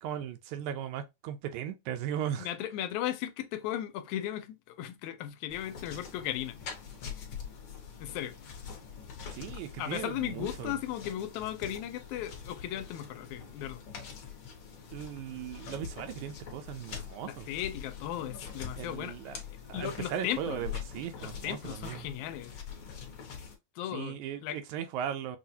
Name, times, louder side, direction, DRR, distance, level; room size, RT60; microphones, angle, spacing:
voice 1, 0.0-2.5 9.3-10.8 14.9-17.5 18.8-19.4 19.7-22.1 23.9-25.4, right 9 dB, 80° right, 1.9 m, -37 dB
voice 2, 2.4-6.6 8.0-8.4 9.8-13.8 17.2-19.2 19.7-20.6 21.2-22.5 23.8-24.6, left 11 dB, 75° left, 1.9 m, -36 dB
sound 1, 5.5-23.6, left 7 dB, 55° left, 1.6 m, -44 dB
6.2 x 2.4 x 2.7 m
omnidirectional pair, 3.5 m